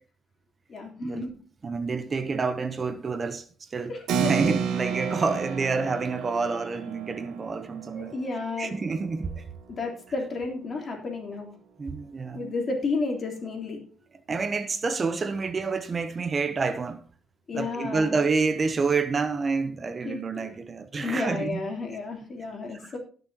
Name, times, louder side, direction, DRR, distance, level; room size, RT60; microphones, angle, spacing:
voice 1, 0.7-1.3 3.9-4.5 7.9-9.1 9.7-11.5 12.3-13.8 17.5-18.2 20.0-20.5 20.9-23.0, left 3 dB, 45° left, 3.5 m, -32 dB
voice 2, 1.6-3.9 4.2-8.1 8.6-9.4 11.8-12.5 14.3-17.0 17.5-21.6 22.7-22.9, right 4 dB, 35° right, 0.8 m, -28 dB
Keyboard (musical), 4.1-10.1, right 7 dB, 80° right, 1.4 m, -32 dB
18.0 x 6.5 x 2.9 m
cardioid pair, 90°, 0 cm